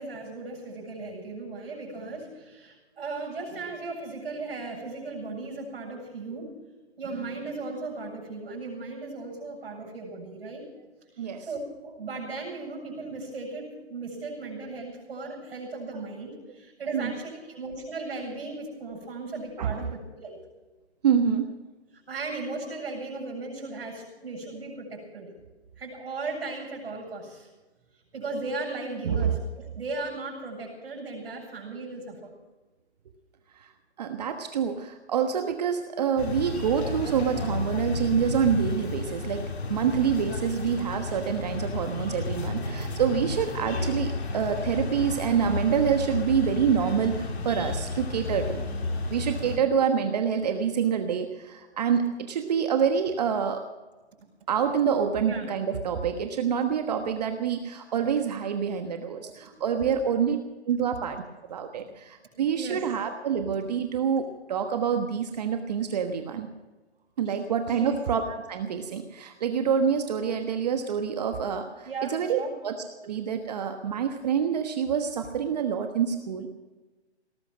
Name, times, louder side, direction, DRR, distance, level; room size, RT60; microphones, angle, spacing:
voice 1, 0.0-6.5 7.0-10.7 11.2-20.4 22.1-25.3 25.8-27.5 28.1-32.3 55.2-55.5 59.2-59.5 59.8-60.0 62.5-63.0 67.2-67.4 67.7-68.0 71.8-72.5, right 3 dB, 60° right, -2 dB, 7.7 m, -37 dB
voice 2, 19.6-19.9 21.0-21.4 29.0-29.3 33.5-33.7 34.0-48.6 49.1-53.7 54.5-60.4 60.7-61.2 61.5-66.5 67.2-72.7 73.0-76.5, right 7 dB, 35° right, 6 dB, 1.3 m, -27 dB
sound 1, 36.2-49.6, left 2 dB, 65° left, 3.0 m, -32 dB
19.0 x 12.0 x 6.3 m, 1.2 s
hypercardioid pair, 155°, 34 cm